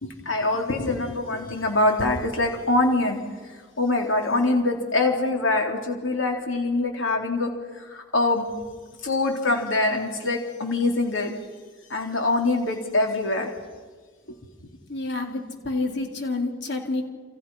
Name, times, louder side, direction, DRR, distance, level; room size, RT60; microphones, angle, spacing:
voice 1, 0.0-3.2 3.8-8.5 9.0-11.3 11.9-13.5, left 2 dB, 75° left, 2 dB, 3.9 m, -24 dB
voice 2, 14.9-17.0, left 2 dB, 55° left, 2 dB, 4.2 m, -28 dB
29.5 x 29.0 x 5.8 m, 1.5 s
head